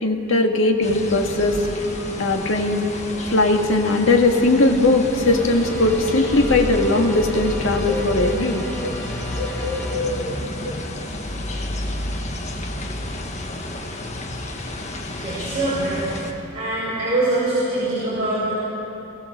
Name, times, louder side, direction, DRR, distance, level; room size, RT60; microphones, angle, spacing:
voice 1, 0.0-1.6 2.2-2.8 3.3-8.6, left 2 dB, 90° left, 3 dB, 1.9 m, -19 dB
sound 1, 0.8-16.3, left 1 dB, 35° left, 1.5 m, -30 dB
sound 2, 1.1-10.6, equal, 10° left, 2.9 m, -37 dB
voice 2, 15.1-16.0 16.5-18.6, right 2 dB, 30° right, -9 dB, 5.7 m, -23 dB
23.0 x 16.5 x 7.4 m, 3.0 s
head